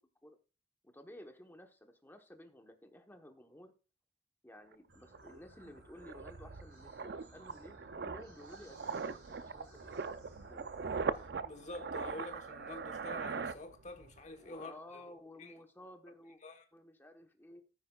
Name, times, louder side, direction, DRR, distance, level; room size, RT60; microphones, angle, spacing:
voice 1, 0.8-3.7 4.4-10.1 10.5-10.6 14.4-16.4 16.7-17.6, left 1 dB, 10° left, 1.1 m, -54 dB
sound 1, 4.7-4.8 5.1-14.2 14.4-14.7, right 5 dB, 60° right, 0.5 m, -41 dB
sound 2, 4.9-11.3, equal, 80° right, 5.6 m, -60 dB
voice 2, 11.4-15.0 15.4-15.5 16.4-16.7, left 2 dB, 40° left, 1.3 m, -47 dB
14.0 x 9.3 x 2.4 m
head